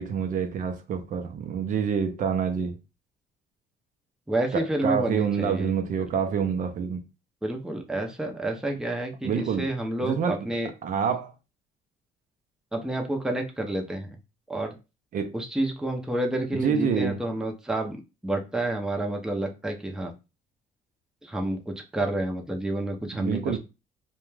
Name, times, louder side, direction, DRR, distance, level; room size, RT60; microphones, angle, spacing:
voice 1, 0.0-2.8 4.5-7.0 9.2-9.7 10.0-10.5 10.8-11.3 15.1-15.3 16.6-17.2 23.1-23.6, right 7 dB, 50° right, 0.5 m, -27 dB
voice 2, 4.3-5.7 7.4-10.7 12.7-14.2 14.5-14.8 15.3-20.1 21.2-23.6, right 1 dB, 5° right, 0.5 m, -29 dB
2.4 x 2.2 x 3.1 m
cardioid pair, 110°, 17 cm